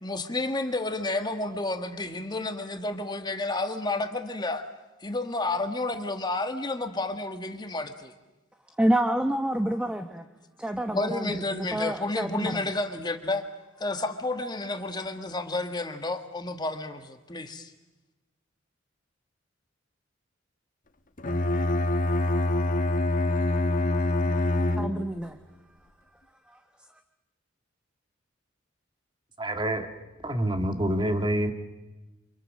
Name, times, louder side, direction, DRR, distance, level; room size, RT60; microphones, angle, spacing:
voice 1, 0.0-4.7 5.0-8.1 10.9-13.5 13.8-17.7, left 2 dB, 20° left, 7 dB, 1.5 m, -31 dB
voice 2, 8.8-10.2 10.6-12.6 24.8-25.4, right 1 dB, 5° right, 7 dB, 1.0 m, -27 dB
Bowed string instrument, 21.2-25.3, left 1 dB, 40° left, 1.2 m, -25 dB
voice 3, 29.4-29.9 30.2-31.5, right 1 dB, 25° right, 7 dB, 1.8 m, -26 dB
29.5 x 26.5 x 6.5 m, 1.1 s
head